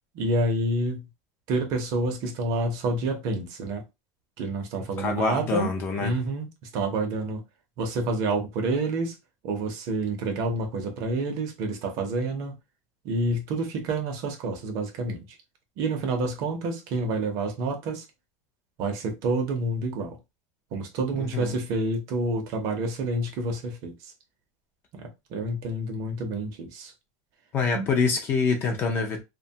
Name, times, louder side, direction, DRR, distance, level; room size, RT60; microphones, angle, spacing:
voice 1, 0.1-1.1 1.5-3.8 4.4-5.7 6.0-6.5 6.7-7.4 7.8-9.2 9.4-12.5 13.0-15.3 15.8-18.1 18.8-20.2 20.7-24.1 24.9-26.9 27.7-27.9, right 2 dB, 40° right, 0.6 m, -28 dB
voice 2, 5.0-6.1 21.2-21.5 27.5-29.2, left 4 dB, 25° left, 0.4 m, -25 dB
2.8 x 2.2 x 2.7 m
supercardioid pair, 180°, 9 cm